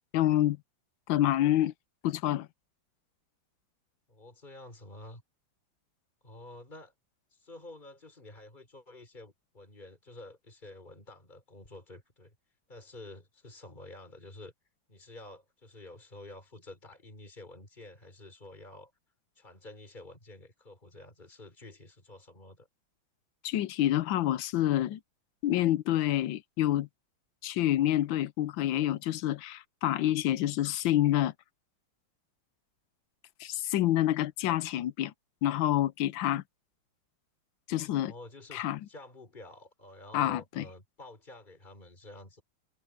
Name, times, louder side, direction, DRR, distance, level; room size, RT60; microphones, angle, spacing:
voice 1, 0.1-0.6 1.1-1.7 2.0-2.5 23.4-25.0 25.4-26.9 27.4-31.3 33.4-35.1 35.4-36.4 37.7-38.1 38.5-38.8 40.1-40.6, left 13 dB, 75° left, 1.4 m, -27 dB
voice 2, 4.1-5.2 6.2-6.9 7.3-12.4 12.7-14.5 14.9-18.9 19.4-22.7 38.1-42.4, left 2 dB, 20° left, 4.8 m, -49 dB
omnidirectional pair, 2.2 m